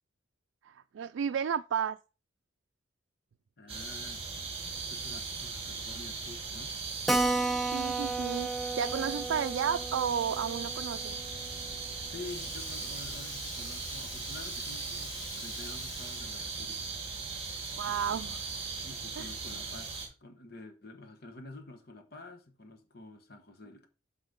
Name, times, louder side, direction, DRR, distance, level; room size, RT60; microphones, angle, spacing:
voice 1, 0.7-2.0 7.7-8.5 8.7-11.2 17.8-18.4 19.2-19.3, right 7 dB, 85° right, 0.3 m, -32 dB
voice 2, 3.6-4.3 4.9-6.8 12.1-16.9 17.8-18.3 18.8-23.9, left 2 dB, 55° left, 1.2 m, -49 dB
sound 1, 3.7-20.1, right 4 dB, 30° right, 1.9 m, -39 dB
Keyboard (musical), 7.1-12.1 12.4-12.5 12.8-12.9 13.1-13.2 13.8-14.2, right 2 dB, ahead, 0.4 m, -33 dB
Sink (filling or washing), 11.5-16.6, left 9 dB, 85° left, 0.8 m, -48 dB
7.9 x 3.9 x 5.3 m
head